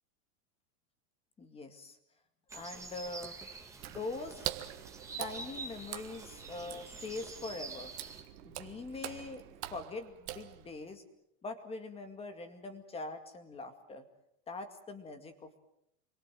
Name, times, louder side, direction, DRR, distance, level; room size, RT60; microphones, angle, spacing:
voice 1, 1.4-2.0 2.5-3.4 3.9-4.5 5.2-7.9 8.4-9.4 9.7-11.0 11.4-14.0 14.5-15.6, left 3 dB, 10° left, 7 dB, 2.2 m, -43 dB
sound 1, 2.5-8.2, right 4 dB, 5° right, 2.2 m, -47 dB
Water / Splash splatter, 3.7-11.0, right 15 dB, 35° right, 1.7 m, -44 dB
sound 2, 3.8-9.9, right 10 dB, 75° right, 2.9 m, -56 dB
29.0 x 23.0 x 7.7 m, 0.80 s
supercardioid pair, 170°, 47 cm